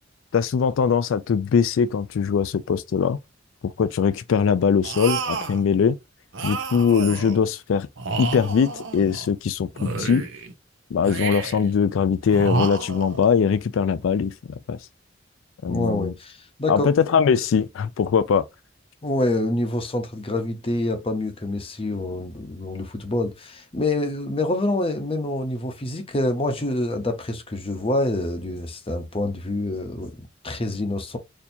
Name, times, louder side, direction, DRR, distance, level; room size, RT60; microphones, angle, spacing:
voice 1, 0.3-3.2 3.8-6.0 6.4-7.9 8.2-9.7 10.0-10.2 10.9-14.3 14.7-14.8 15.6-16.1 16.7-18.4, left 6 dB, 85° left, 0.4 m, -21 dB
sound 1, 4.8-5.6 6.3-7.4 8.0-9.3 9.7-10.5 11.0-11.7 12.3-13.3, right 4 dB, 75° right, 0.8 m, -30 dB
voice 2, 15.7-17.0 19.0-31.2, left 1 dB, 30° left, 0.8 m, -26 dB
4.3 x 2.8 x 2.7 m
head